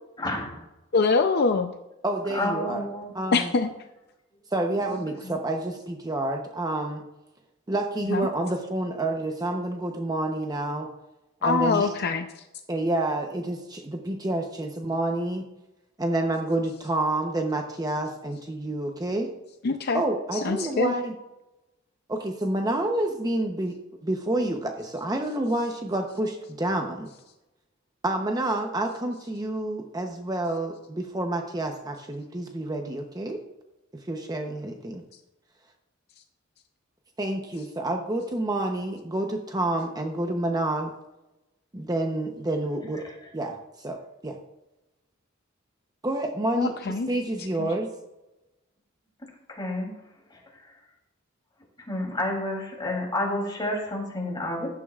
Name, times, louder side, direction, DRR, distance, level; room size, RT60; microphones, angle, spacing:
voice 1, 0.2-0.5 2.3-3.1 49.6-49.9 51.9-54.7, left 1 dB, 20° left, -1 dB, 3.0 m, -29 dB
voice 2, 0.9-1.7 3.3-3.7 8.0-8.3 11.4-12.4 19.6-21.0 46.5-47.1 47.5-47.7, left 4 dB, 50° left, 7 dB, 0.6 m, -24 dB
voice 3, 2.0-2.9 3.1-3.5 4.5-7.0 7.7-10.9 11.4-11.9 12.7-15.4 16.0-19.3 19.9-21.1 22.1-23.7 24.0-27.1 28.0-33.4 33.9-35.0 37.2-40.9 41.7-43.0 43.3-44.4 46.0-47.9, right 1 dB, 20° right, 3 dB, 0.8 m, -28 dB
15.0 x 10.5 x 2.4 m, 0.96 s
head